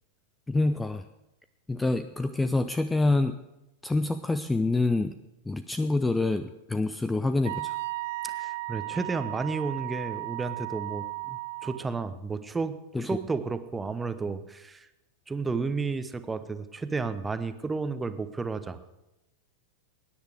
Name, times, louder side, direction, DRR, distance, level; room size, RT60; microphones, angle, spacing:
voice 1, 0.5-1.0 1.7-3.4 3.8-5.2 5.5-7.8 12.9-13.1, left 2 dB, 10° left, 11 dB, 0.5 m, -26 dB
Wind instrument woodwind instrument, 7.4-11.9, right 20 dB, 55° right, 0.6 m, -35 dB
voice 2, 8.2-14.9 15.3-18.8, right 4 dB, 10° right, 11 dB, 1.0 m, -32 dB
19.5 x 10.5 x 5.0 m, 0.96 s
figure-of-eight pair, 90°, 0 cm